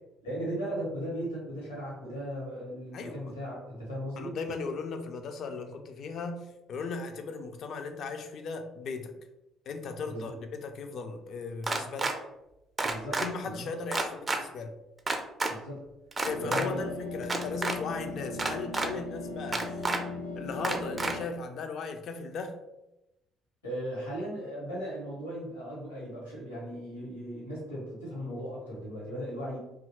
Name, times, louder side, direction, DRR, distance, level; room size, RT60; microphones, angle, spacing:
voice 1, 0.2-4.4 10.1-10.3 12.8-13.7 15.5-15.8 16.4-16.9 23.6-29.6, equal, 80° left, -5 dB, 1.0 m, -37 dB
voice 2, 2.9-3.3 4.2-9.1 9.7-12.1 13.2-14.7 16.2-19.9 20.4-22.6, left 4 dB, 50° left, 6 dB, 0.3 m, -37 dB
sound 1, 11.6-12.1 12.8-13.3 13.9-14.4 15.1-15.5 16.1-16.6 17.2-17.8 18.4-18.9 19.5-20.0 20.6-21.1, right 2 dB, 25° right, 0.4 m, -29 dB
sound 2, 16.2-21.3, left 2 dB, 90° right, 0.4 m, -38 dB
2.7 x 2.4 x 2.9 m, 0.93 s
figure-of-eight pair, 50°, 0 cm